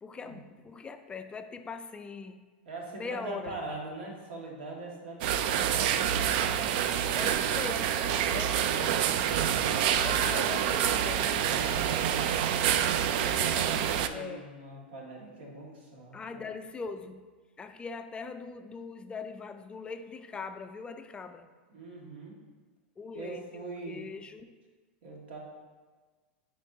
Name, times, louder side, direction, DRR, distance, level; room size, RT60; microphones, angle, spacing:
voice 1, 0.0-2.5 2.9-3.6 7.1-8.0 8.3-9.1 10.0-11.7 12.1-12.7 14.1-14.6 16.1-17.3 17.6-21.5 23.0-24.6, left 5 dB, 15° left, 8 dB, 0.3 m, -41 dB
voice 2, 2.7-6.8 9.2-9.7 13.2-16.4 21.7-22.4 23.1-24.0 25.0-25.4, right 2 dB, 75° right, -2 dB, 1.8 m, -42 dB
sound 1, 5.2-14.1, right 9 dB, 60° right, 0.3 m, -27 dB
8.9 x 4.4 x 2.7 m, 1.4 s
hypercardioid pair, 120°, 6 cm